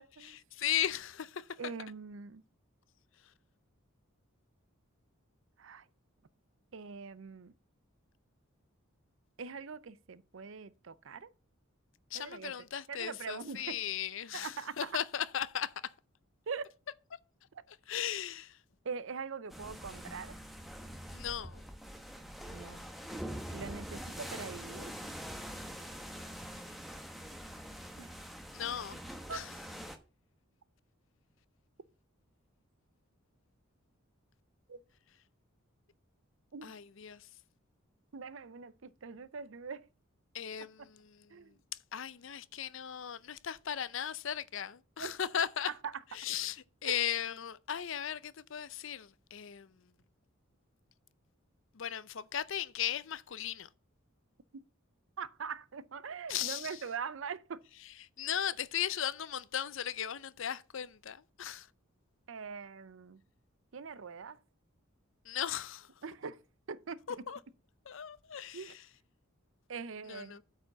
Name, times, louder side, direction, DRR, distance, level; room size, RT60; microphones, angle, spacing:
voice 1, 0.0-0.4 1.6-2.4 5.6-5.8 6.7-7.5 9.4-11.3 12.1-12.5 12.9-13.8 14.3-15.0 16.5-16.7 17.5-17.6 18.8-20.4 22.5-22.9 23.5-24.9 28.0-28.1 29.3-29.4 34.7-34.8 36.5-36.7 38.1-39.8 41.3-41.5 45.0-45.1 45.7-45.9 46.8-47.0 55.2-57.6 62.3-63.2 63.7-64.4 66.0-66.4 66.7-67.0 68.5-68.8 69.7-70.4, right 5 dB, 65° right, 0.5 m, -42 dB
voice 2, 0.5-1.5 12.1-15.9 17.9-18.6 21.1-21.6 28.5-29.0 29.3-29.5 36.6-37.3 40.3-41.3 41.9-45.7 46.1-49.7 51.7-53.7 56.3-56.8 58.2-61.7 65.3-65.9 67.1-67.4 67.9-68.8 70.1-70.4, left 9 dB, 60° left, 0.5 m, -37 dB
sound 1, 19.5-30.0, equal, ahead, 1.0 m, -44 dB
8.7 x 4.8 x 6.6 m
head